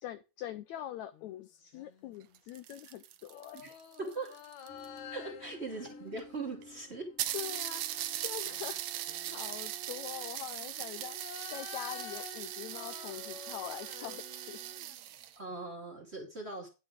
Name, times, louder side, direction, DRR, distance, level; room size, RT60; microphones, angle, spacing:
voice 1, 0.0-3.8 5.7-5.8 7.3-11.2 11.5-14.6, left 12 dB, 80° left, 13 dB, 1.6 m, -44 dB
sound 1, 1.1-2.4 3.3-7.7 8.4-9.7 10.5-15.2 15.5-15.6, left 9 dB, 65° left, 2.3 m, -51 dB
sound 2, 2.2-5.0 5.9-6.0 6.2-6.3 6.6-6.7 7.2-15.4, right 12 dB, 75° right, 1.6 m, -40 dB
voice 2, 4.0-4.4 5.1-7.1 15.4-16.7, right 3 dB, 20° right, 2 dB, 2.5 m, -40 dB
sound 3, 4.7-9.7, left 2 dB, 5° left, 0.9 m, -56 dB
11.0 x 8.7 x 3.6 m, 0.28 s
omnidirectional pair, 4.1 m